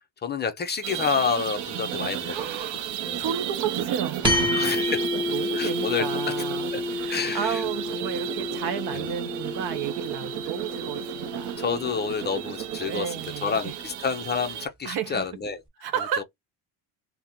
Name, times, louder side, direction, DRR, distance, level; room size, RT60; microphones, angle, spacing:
voice 1, 0.2-2.5 3.1-3.3 4.6-5.0 5.5-6.1 6.7-6.8 7.1-7.6 8.9-9.0 11.6-13.1 13.4-15.6 16.2-16.3, left 6 dB, 25° left, 0.4 m, -28 dB
sound 1, 0.8-14.7, right 11 dB, 50° right, 0.5 m, -33 dB
voice 2, 2.2-2.9 3.2-11.6 12.8-13.7 14.8-15.3 15.8-16.2, right 9 dB, 70° right, 0.9 m, -33 dB
Thump thud, 2.8-10.1 10.5-10.9, equal, 5° left, 0.8 m, -40 dB
sound 2, 4.2-12.9, left 3 dB, 15° right, 1.2 m, -31 dB
3.6 x 2.0 x 2.8 m
cardioid pair, 135°, 39 cm